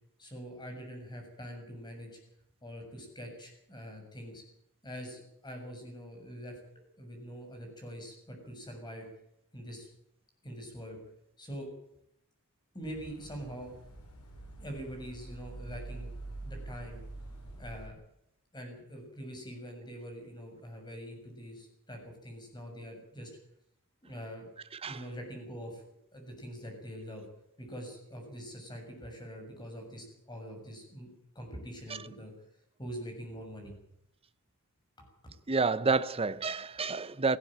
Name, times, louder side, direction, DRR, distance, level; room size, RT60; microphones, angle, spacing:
voice 1, 0.2-2.2 2.6-4.4 4.8-6.6 7.0-9.1 9.5-9.9 10.4-11.0 11.4-11.7 12.7-13.7 14.5-16.1 16.4-17.0 17.6-18.0 18.5-23.3 24.0-24.5 24.8-25.8 26.1-27.2 27.6-31.1 31.4-32.3 32.8-33.7 35.0-35.1, equal, 20° left, 6.9 m, -44 dB
sound 1, 12.8-17.9, right 2 dB, 90° left, 4.8 m, -45 dB
voice 2, 35.5-37.4, right 4 dB, 25° right, 0.7 m, -29 dB
18.0 x 16.5 x 8.9 m
head